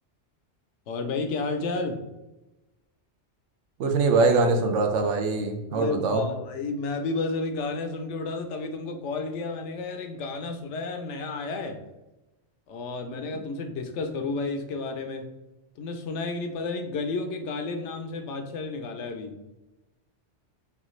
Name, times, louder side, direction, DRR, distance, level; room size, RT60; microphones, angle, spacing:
voice 1, 0.9-2.0 5.7-11.8 12.7-15.3 15.8-19.4, left 3 dB, 80° left, 6 dB, 0.9 m, -31 dB
voice 2, 3.8-6.2, right 3 dB, 80° right, 4 dB, 1.0 m, -23 dB
5.5 x 2.4 x 3.1 m, 1.0 s
omnidirectional pair, 1.2 m